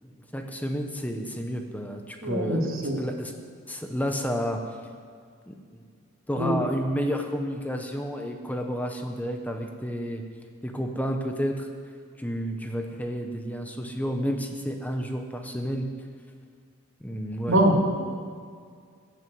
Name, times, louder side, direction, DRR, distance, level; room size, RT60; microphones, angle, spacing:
voice 1, 0.0-3.3 3.7-4.6 5.5-5.8 6.3-10.2 10.6-11.7 12.2-15.9 17.0-17.6, equal, 10° left, 4 dB, 1.0 m, -31 dB
voice 2, 2.2-3.0 6.4-6.6 17.5-18.0, right 1 dB, 75° right, 0 dB, 2.4 m, -23 dB
15.0 x 8.0 x 7.9 m, 2.1 s
head